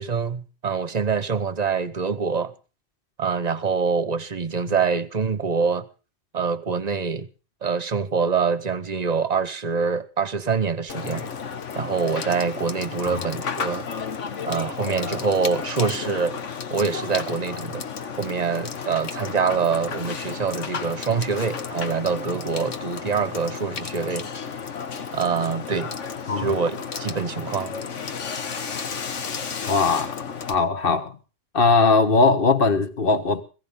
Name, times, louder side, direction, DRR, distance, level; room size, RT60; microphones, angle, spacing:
voice 1, 0.0-2.5 3.2-5.9 6.3-7.3 7.6-11.3 11.8-13.9 14.5-16.4 16.7-17.8 18.2-24.3 25.1-25.9 26.4-27.7, right 5 dB, 35° right, 1.0 m, -25 dB
Water / Water tap faucet / Sink (filling or washing), 10.9-30.5, left 6 dB, 75° left, 1.5 m, -32 dB
voice 2, 29.7-30.2 30.5-31.2 31.5-33.4, left 4 dB, 50° left, 1.5 m, -20 dB
19.5 x 16.5 x 3.7 m
omnidirectional pair, 1.2 m